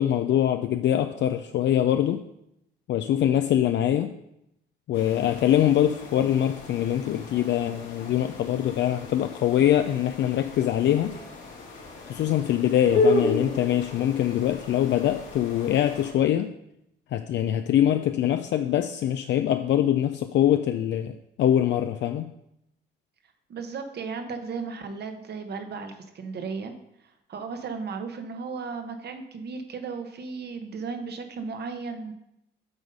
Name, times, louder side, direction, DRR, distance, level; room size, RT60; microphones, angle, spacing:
voice 1, 0.0-2.2 2.9-4.1 4.9-11.1 12.1-16.5 17.1-22.3, left 11 dB, 65° left, 8 dB, 0.4 m, -23 dB
sound 1, 4.9-16.1, left 2 dB, 80° left, 1.9 m, -32 dB
voice 2, 23.5-26.7 27.0-32.1, right 5 dB, 55° right, 7 dB, 1.1 m, -35 dB
8.0 x 3.9 x 5.3 m, 0.81 s
cardioid pair, 90°, 20 cm